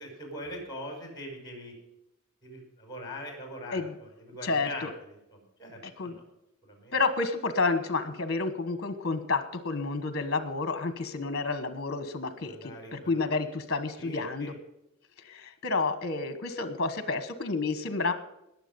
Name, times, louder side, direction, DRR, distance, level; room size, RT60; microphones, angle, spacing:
voice 1, 0.0-1.7 2.4-6.2 6.7-7.0 12.5-13.2 14.0-14.5, left 1 dB, 20° left, 3 dB, 5.3 m, -42 dB
voice 2, 4.4-4.9 5.8-6.2 6.9-14.5 15.2-18.1, left 3 dB, 50° left, 10 dB, 1.2 m, -30 dB
20.5 x 7.3 x 5.3 m, 0.85 s
head